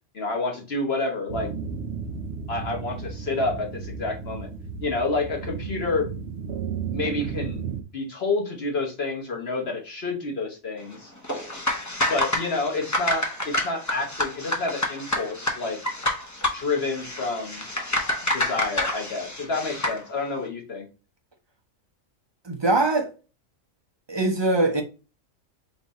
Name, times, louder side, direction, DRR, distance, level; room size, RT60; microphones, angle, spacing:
voice 1, 0.1-1.5 2.5-4.5 4.8-6.1 6.9-7.6 7.9-11.1 12.1-15.8 16.5-17.7 18.3-20.9, left 3 dB, 50° left, 1.4 m, -29 dB
sound 1, 1.3-7.8, right 6 dB, 65° right, 0.7 m, -33 dB
sound 2, 11.2-20.0, left 1 dB, 20° left, 0.5 m, -28 dB
voice 2, 22.5-23.1 24.1-24.8, right 2 dB, 25° right, 0.6 m, -22 dB
3.9 x 2.5 x 4.0 m
omnidirectional pair, 1.4 m